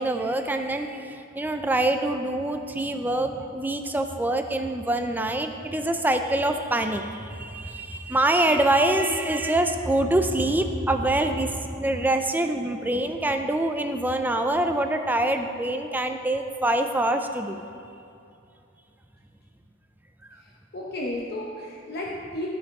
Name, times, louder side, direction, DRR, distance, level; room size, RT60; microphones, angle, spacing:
voice 1, 0.0-17.6, right 1 dB, 10° right, 6 dB, 0.4 m, -25 dB
voice 2, 20.4-22.5, left 1 dB, 50° left, -3 dB, 0.8 m, -33 dB
13.0 x 4.6 x 4.7 m, 2.6 s
head